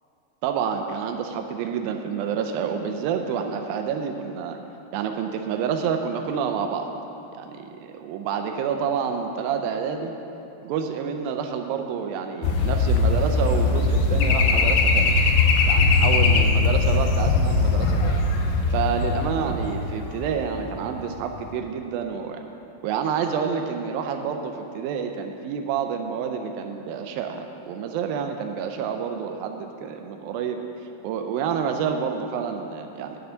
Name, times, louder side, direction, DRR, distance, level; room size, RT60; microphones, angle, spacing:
voice 1, 0.4-4.6 4.9-6.9 7.4-10.1 10.6-15.2 15.7-18.3 18.7-22.4 22.8-30.6 31.0-33.2, right 7 dB, 85° right, 5 dB, 2.1 m, -28 dB
sound 1, 12.4-21.0 21.2-21.5, left 3 dB, 90° left, 1.8 m, -21 dB
10.5 x 6.7 x 5.6 m, 2.9 s
omnidirectional pair, 4.7 m